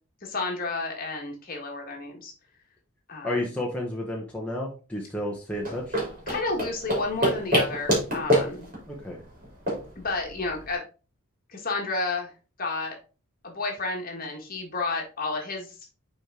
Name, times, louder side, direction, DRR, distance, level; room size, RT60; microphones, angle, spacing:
voice 1, 0.2-2.3 3.1-3.5 6.3-8.7 10.0-10.8 11.5-12.3 12.6-13.0 13.4-15.7, left 3 dB, 40° left, 1 dB, 1.7 m, -31 dB
voice 2, 3.2-6.0 8.9-9.2, left 1 dB, 5° left, -3 dB, 1.0 m, -31 dB
sound 1, 5.5-10.7, equal, 35° right, 3.3 m, -27 dB
6.3 x 4.5 x 3.8 m, 0.34 s
head